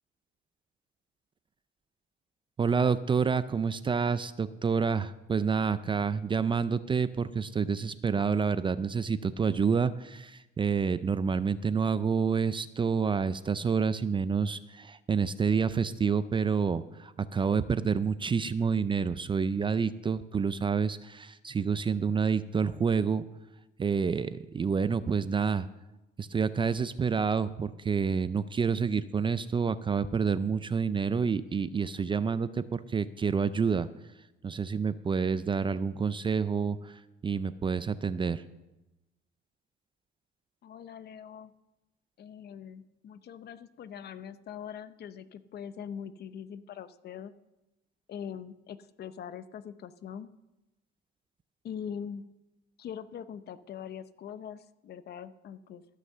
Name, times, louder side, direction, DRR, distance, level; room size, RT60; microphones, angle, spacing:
voice 1, 2.6-23.3 23.8-25.7 26.2-33.9 34.4-38.4, right 6 dB, 25° right, 15 dB, 0.4 m, -28 dB
voice 2, 40.6-41.5 42.2-47.3 48.1-50.3 51.6-52.3 52.8-55.8, left 8 dB, 50° left, 14 dB, 0.6 m, -42 dB
13.5 x 6.4 x 6.6 m, 0.98 s
cardioid pair, 120°, 21 cm